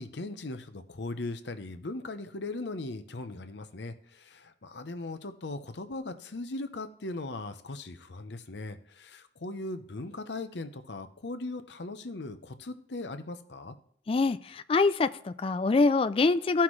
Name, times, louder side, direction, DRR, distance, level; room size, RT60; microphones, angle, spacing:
voice 1, 0.0-13.7, left 2 dB, 75° left, 9 dB, 0.8 m, -39 dB
voice 2, 14.1-16.6, left 3 dB, 30° left, 11 dB, 0.3 m, -25 dB
15.0 x 5.8 x 3.1 m, 0.63 s
head